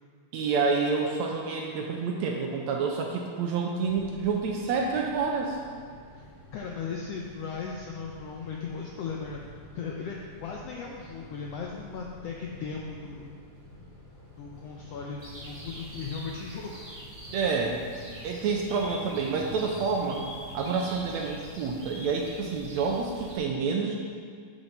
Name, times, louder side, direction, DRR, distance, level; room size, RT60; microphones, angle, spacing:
voice 1, 0.3-5.6 17.3-17.8 18.2-20.2 20.5-24.0, right 5 dB, 75° right, 0 dB, 1.7 m, -28 dB
sound 1, 3.8-21.5, left 1 dB, 30° left, 2.4 m, -50 dB
voice 2, 6.5-9.4 9.7-13.4 14.4-16.8, left 5 dB, 80° left, -1 dB, 1.4 m, -37 dB
sound 2, 15.2-23.4, right 1 dB, 15° right, 1.1 m, -44 dB
10.5 x 6.5 x 4.3 m, 2.1 s
omnidirectional pair, 3.6 m